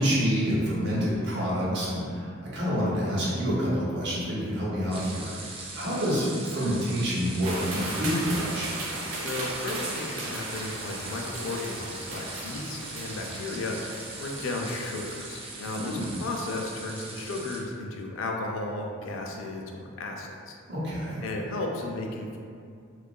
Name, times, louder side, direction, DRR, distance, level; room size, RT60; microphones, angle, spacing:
voice 1, 0.0-5.3 5.7-8.8 15.8-16.1 20.7-21.2, equal, 60° right, -7 dB, 0.8 m, -27 dB
sound 1, 4.9-17.6, right 2 dB, 30° right, 0.3 m, -41 dB
sound 2, 7.4-16.0, right 2 dB, 90° right, 0.5 m, -37 dB
voice 2, 9.2-20.6 21.2-22.4, left 2 dB, 80° left, 1 dB, 0.4 m, -34 dB
2.8 x 2.3 x 2.2 m, 2.3 s
head